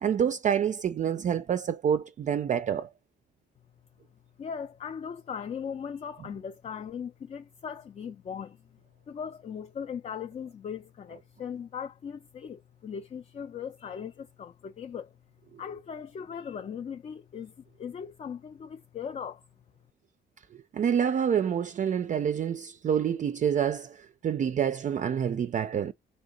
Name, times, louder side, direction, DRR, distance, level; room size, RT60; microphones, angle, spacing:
voice 1, 0.0-2.9 20.7-25.9, right 8 dB, 40° right, 0.4 m, -27 dB
voice 2, 4.4-8.6 9.1-15.1 15.6-19.4, left 7 dB, 35° left, 0.4 m, -39 dB
3.5 x 2.7 x 3.9 m
cardioid pair, 90°, 20 cm